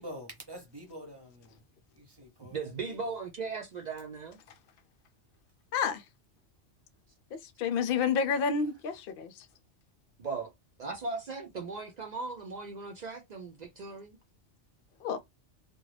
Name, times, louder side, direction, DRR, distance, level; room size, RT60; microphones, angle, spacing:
voice 1, 0.0-1.5 1.9-2.7, equal, 25° right, 0.9 m, -46 dB
voice 2, 2.4-4.4 10.2-10.5 10.8-14.2, right 4 dB, 60° right, 0.4 m, -38 dB
voice 3, 5.7-6.0 7.6-9.5 15.0-15.2, left 6 dB, 60° left, 0.7 m, -29 dB
2.4 x 2.2 x 3.2 m
omnidirectional pair, 1.2 m